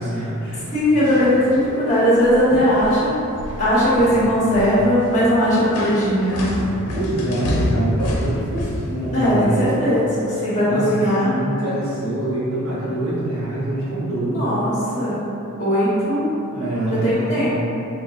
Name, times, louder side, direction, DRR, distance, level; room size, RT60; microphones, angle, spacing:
voice 1, 0.0-0.7 6.9-9.8 10.7-14.5 16.5-17.5, right 1 dB, 60° right, -11 dB, 1.1 m, -25 dB
sound 1, 0.5-1.7 2.1-2.5 2.7-9.3, left 1 dB, 90° left, 0.5 m, -28 dB
voice 2, 0.7-3.2 3.6-6.6 9.1-11.3 14.2-15.2 15.6-16.3 17.0-17.5, equal, 35° left, -10 dB, 1.2 m, -18 dB
3.8 x 3.1 x 2.6 m, 2.8 s
head